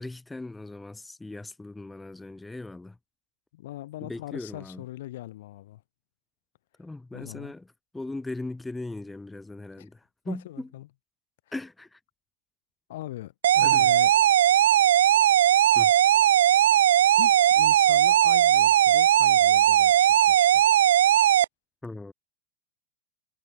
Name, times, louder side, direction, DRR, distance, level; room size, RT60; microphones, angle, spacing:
voice 1, 0.0-3.0 4.0-4.8 6.8-7.6 7.9-10.0 10.2-10.7 11.5-12.0 13.6-13.9 15.7-15.9 21.8-22.1, left 2 dB, 5° left, 3.5 m, -38 dB
voice 2, 3.5-5.8 7.1-7.5 9.8-9.9 10.2-10.9 12.9-14.2 17.2-20.6, left 15 dB, 55° left, 5.0 m, -40 dB
sound 1, 13.4-21.4, right 11 dB, 60° right, 0.4 m, -19 dB
figure-of-eight pair, 90°, 0 cm